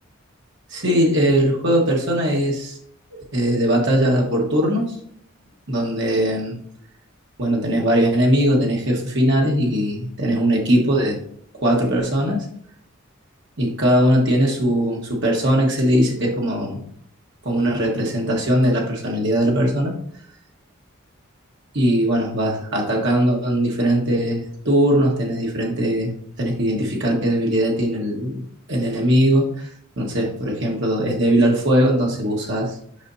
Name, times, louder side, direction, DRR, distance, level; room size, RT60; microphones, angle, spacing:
voice 1, 0.7-2.8 3.3-5.0 5.7-6.6 7.4-11.2 11.6-12.4 13.6-16.8 17.4-20.0 21.7-29.7 29.9-32.8, equal, 60° right, -1 dB, 1.6 m, -20 dB
8.7 x 5.2 x 2.7 m, 0.63 s
head